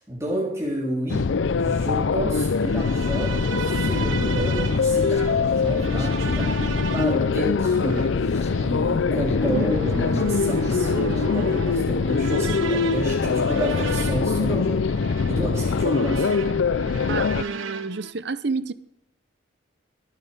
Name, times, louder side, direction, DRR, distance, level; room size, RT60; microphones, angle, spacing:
voice 1, 0.0-1.3 1.6-6.6 6.9-14.8 15.3-16.3, right 1 dB, 15° right, 3.5 m, -30 dB
sound 1, 1.1-17.4, left 4 dB, 70° left, 0.5 m, -23 dB
sound 2, 2.6-18.1, right 5 dB, 90° right, 1.0 m, -35 dB
Human voice, 4.5-11.3, left 1 dB, 35° left, 1.4 m, -43 dB
voice 2, 17.1-18.7, right 4 dB, 60° right, 0.7 m, -29 dB
23.5 x 9.6 x 3.5 m
head